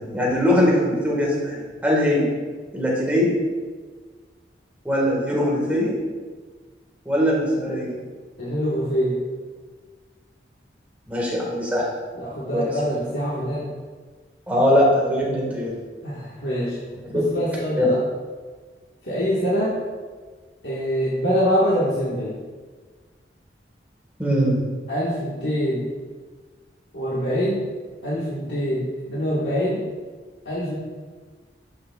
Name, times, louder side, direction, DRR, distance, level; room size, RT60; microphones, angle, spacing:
voice 1, 0.0-2.3 2.7-3.3 4.8-5.9 7.0-7.9 11.1-11.9 12.5-12.7 14.5-15.7 17.0-17.2 17.8-17.9 24.2-24.6, equal, 10° right, -4 dB, 1.7 m, -21 dB
voice 2, 8.4-9.2 12.2-13.7 16.0-16.8 17.1-18.0 19.0-19.8 20.6-22.4 24.9-25.8 26.9-27.6 28.0-29.8 30.4-30.8, equal, 85° left, -8 dB, 1.7 m, -24 dB
11.5 x 6.6 x 2.4 m, 1.5 s
head